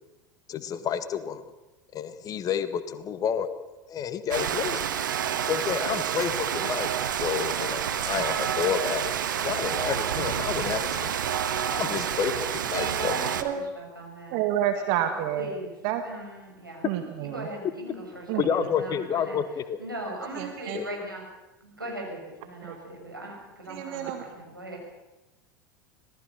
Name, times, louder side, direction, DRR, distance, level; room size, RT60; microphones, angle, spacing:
voice 1, 0.5-1.4 1.9-3.5 3.9-4.8 5.5-11.2 11.7-13.1 18.4-19.8 20.7-20.9, left 8 dB, 35° left, 11 dB, 1.7 m, -30 dB
Rain, 4.3-13.4, right 9 dB, 70° right, 1.6 m, -28 dB
voice 2, 12.7-14.4 14.9-15.8 16.0-16.9 17.2-19.4 19.8-21.2 21.6-24.8, right 1 dB, 90° right, -1 dB, 7.2 m, -39 dB
voice 3, 14.3-15.5 15.8-16.0 16.8-17.5 18.3-18.4 20.4-20.8 22.6-22.8 23.7-24.2, right 11 dB, 50° right, 7 dB, 1.7 m, -29 dB
26.0 x 19.0 x 6.9 m, 1.0 s
figure-of-eight pair, 80°, 11 cm